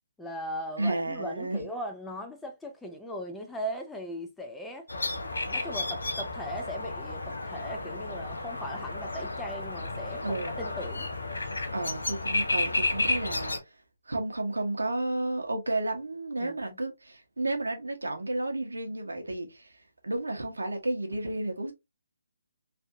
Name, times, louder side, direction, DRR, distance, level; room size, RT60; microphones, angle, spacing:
voice 1, 0.2-4.9 5.5-11.1 16.4-16.6, equal, 5° left, 0.5 m, -39 dB
voice 2, 0.8-1.6 10.2-10.6 11.7-13.8 14.1-21.7, right 2 dB, 80° right, 1.0 m, -32 dB
sound 1, 4.9-13.6, left 2 dB, 75° left, 0.8 m, -32 dB
3.3 x 2.6 x 2.6 m
figure-of-eight pair, 140°, 0 cm